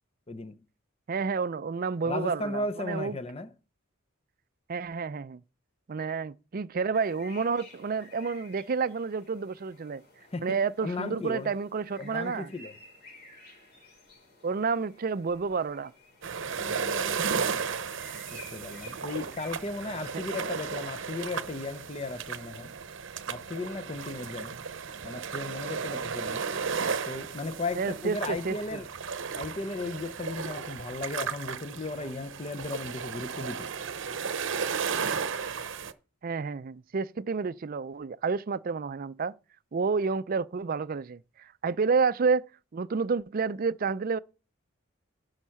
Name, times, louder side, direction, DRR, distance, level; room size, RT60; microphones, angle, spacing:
voice 1, 0.3-0.6 2.0-3.5 10.3-11.6 12.0-12.7 16.6-17.2 17.5-17.7 18.3-22.7 23.3-24.6 25.0-26.5 27.1-28.9 29.4-33.7, left 2 dB, 30° left, 0.6 m, -36 dB
voice 2, 1.1-3.2 4.7-5.4 5.9-10.0 10.4-12.5 14.4-15.9 20.1-20.2 27.7-28.8 36.2-39.3 39.7-44.2, right 5 dB, 45° right, 0.4 m, -30 dB
sound 1, 6.9-19.5, left 3 dB, 50° left, 4.8 m, -53 dB
sound 2, 16.2-35.9, right 6 dB, 60° right, 0.8 m, -34 dB
11.0 x 6.4 x 5.8 m
head